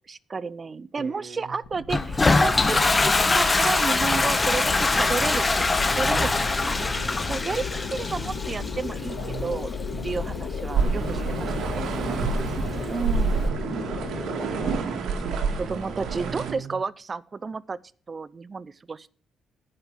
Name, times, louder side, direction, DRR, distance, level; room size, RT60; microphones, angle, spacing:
voice 1, 0.1-5.6 6.0-6.9 7.3-9.7 10.0-11.9 12.6-13.4 14.7-17.8 18.1-19.1, right 4 dB, 35° right, 20 dB, 0.5 m, -32 dB
voice 2, 1.0-1.5 4.1-4.3 5.9-7.5 9.1-9.6 9.9-10.2 10.9-11.4 11.9-13.5 14.0-15.0 15.4-16.8, right 5 dB, 55° right, -3 dB, 3.2 m, -40 dB
sound 1, 1.6-14.8, left 6 dB, 85° left, 2.1 m, -37 dB
Toilet flush, 1.9-13.5, left 3 dB, 25° left, 0.9 m, -25 dB
sound 2, 10.7-16.5, right 4 dB, 70° right, 2.0 m, -27 dB
10.5 x 5.4 x 8.2 m, 0.43 s
cardioid pair, 90°, 0 cm